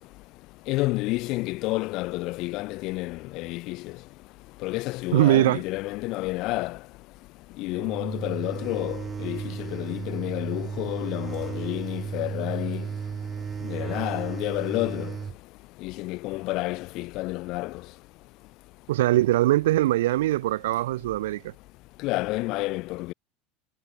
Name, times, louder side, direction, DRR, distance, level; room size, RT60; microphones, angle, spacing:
voice 1, 0.7-4.0 4.6-6.9 7.5-12.9 13.6-15.2 15.8-17.9 22.0-23.1, left 21 dB, 60° left, 3.4 m, -30 dB
voice 2, 5.1-5.6 18.9-21.5, right 15 dB, 80° right, 0.7 m, -22 dB
sound 1, 7.8-15.4, right 6 dB, 25° right, 4.3 m, -34 dB
supercardioid pair, 105°, 0 cm